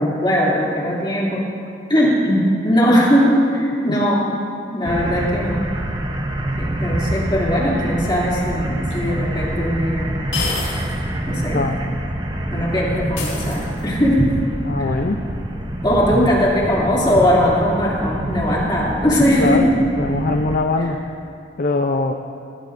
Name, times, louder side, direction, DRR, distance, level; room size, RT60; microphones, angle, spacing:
voice 1, 0.0-1.5 1.9-4.4 4.7-5.7 6.6-10.2 11.3-11.6 12.5-14.3 14.8-15.0 15.8-19.8 20.8-20.9, equal, 25° left, -5 dB, 2.7 m, -19 dB
sound 1, 4.9-20.6, right 1 dB, 25° right, 0.8 m, -26 dB
sound 2, 8.9-9.0 10.3-11.0 11.4-11.5 13.2-14.0, left 4 dB, 80° left, 3.3 m, -28 dB
voice 2, 11.5-11.9 14.7-15.2 16.1-16.3 19.4-19.7 20.0-21.0 21.6-22.1, left 2 dB, 50° left, 4 dB, 0.6 m, -21 dB
19.5 x 15.0 x 2.6 m, 2.5 s
head